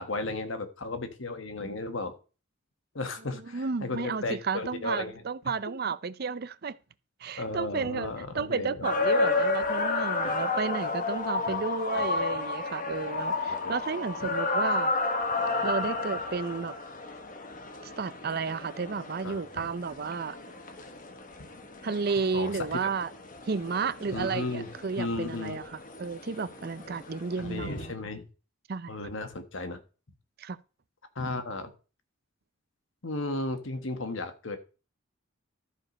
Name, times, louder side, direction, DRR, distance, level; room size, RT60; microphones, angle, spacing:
voice 1, 0.0-2.1 2.9-5.5 7.4-8.9 11.5-11.6 11.9-12.2 13.5-13.7 14.2-14.3 19.2-19.7 22.3-22.9 24.1-24.7 25.0-25.6 27.4-28.2 28.9-29.8 31.1-31.7 33.0-34.6, left 2 dB, 70° left, 1.4 m, -35 dB
voice 2, 3.4-6.8 7.2-14.9 15.6-16.7 17.8-20.3 21.8-23.1 23.5-27.9 28.7-28.9 30.4-30.6, right 5 dB, 50° right, 0.5 m, -32 dB
sound 1, 8.8-27.9, left 3 dB, 40° left, 1.1 m, -32 dB
13.0 x 5.0 x 5.3 m
head